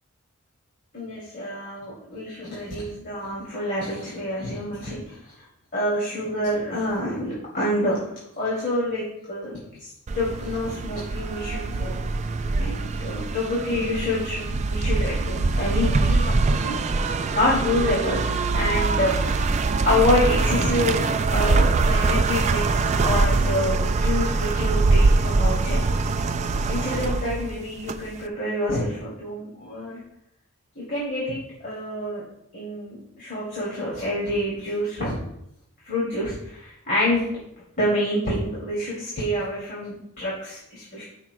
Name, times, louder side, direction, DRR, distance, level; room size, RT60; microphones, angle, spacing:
voice 1, 0.9-5.2 5.7-8.0 8.4-9.6 10.1-12.0 12.6-16.7 17.0-19.3 19.8-21.0 21.3-25.8 26.7-30.0 30.8-32.2 32.5-35.2 35.8-37.3 37.8-41.0, left 1 dB, 40° left, -7 dB, 2.5 m, -27 dB
sound 1, 10.1-28.2, right 3 dB, 30° right, 0.3 m, -23 dB
14.0 x 5.9 x 2.3 m, 0.77 s
head